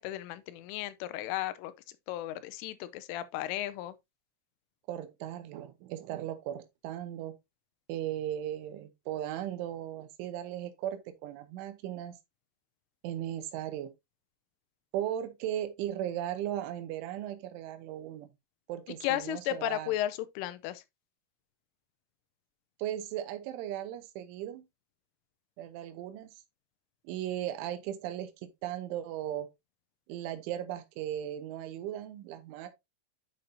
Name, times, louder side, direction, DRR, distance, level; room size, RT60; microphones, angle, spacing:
voice 1, 0.0-1.7 2.1-4.0 18.9-20.8, left 14 dB, 90° left, 3.2 m, -34 dB
voice 2, 4.9-7.3 7.9-12.1 13.0-13.9 14.9-18.3 18.7-19.9 22.8-24.6 25.6-26.3 27.0-29.5 30.1-32.7, right 11 dB, 90° right, 3.3 m, -37 dB
8.3 x 6.7 x 2.7 m
omnidirectional pair, 5.5 m